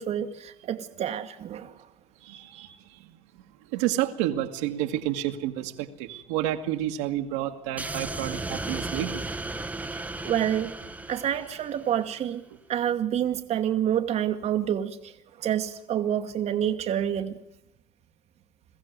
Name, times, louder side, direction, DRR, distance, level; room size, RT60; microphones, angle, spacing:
voice 1, 0.0-1.9 9.9-10.7 11.1-12.4 12.7-17.4, right 10 dB, 50° right, 1.3 m, -28 dB
voice 2, 2.2-3.0 3.7-9.2, right 13 dB, 80° right, 1.7 m, -30 dB
sound 1, 7.8-12.1, right 2 dB, 10° right, 1.0 m, -35 dB
22.5 x 15.0 x 9.3 m
hypercardioid pair, 75°, 14 cm